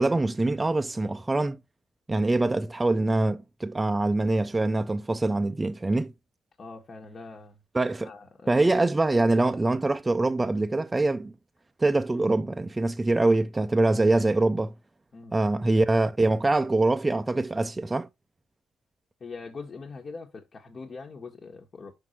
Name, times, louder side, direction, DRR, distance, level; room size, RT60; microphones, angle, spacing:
voice 1, 0.0-1.6 2.1-6.1 7.7-8.1 8.5-11.3 11.8-14.7 15.3-18.1, right 2 dB, 20° right, 0.5 m, -24 dB
voice 2, 6.6-7.6 8.0-8.7 15.1-15.4 19.2-21.9, left 4 dB, 45° left, 1.4 m, -42 dB
5.8 x 5.2 x 4.3 m
supercardioid pair, 70°, 0 cm